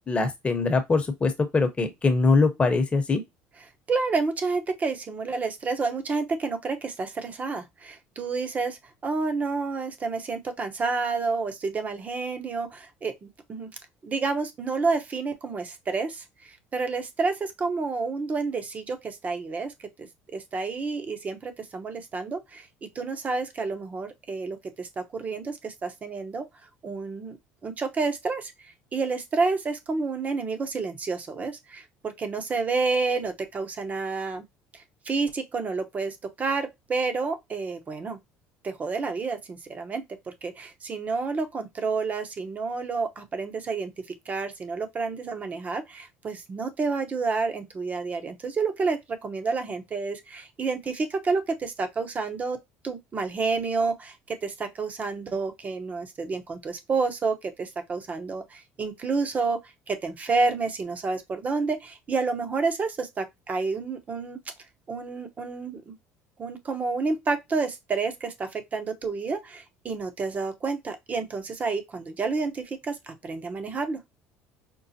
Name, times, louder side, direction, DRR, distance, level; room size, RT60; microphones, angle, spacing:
voice 1, 0.1-3.2, left 3 dB, 25° left, 1.0 m, -23 dB
voice 2, 3.9-13.7 14.0-26.4 26.8-27.4 27.6-34.4 34.7-38.2 38.6-43.9 44.3-52.6 52.8-59.6 59.9-64.4 64.9-66.0 66.4-74.0, right 4 dB, 30° right, 0.9 m, -29 dB
5.3 x 2.1 x 2.7 m
supercardioid pair, 110°, 5 cm